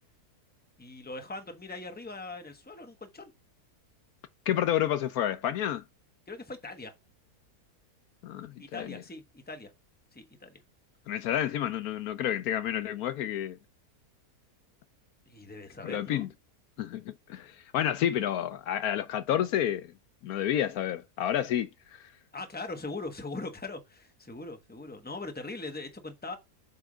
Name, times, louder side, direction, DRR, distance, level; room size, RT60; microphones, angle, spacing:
voice 1, 0.8-3.3 6.3-6.9 8.6-9.7 10.1-10.5 15.3-16.3 22.3-26.4, left 3 dB, 5° left, 1.0 m, -41 dB
voice 2, 4.5-5.8 8.2-9.0 11.1-13.6 15.8-16.3 16.8-19.9 20.2-22.1, left 11 dB, 75° left, 1.0 m, -30 dB
8.1 x 3.4 x 5.0 m
omnidirectional pair, 1.7 m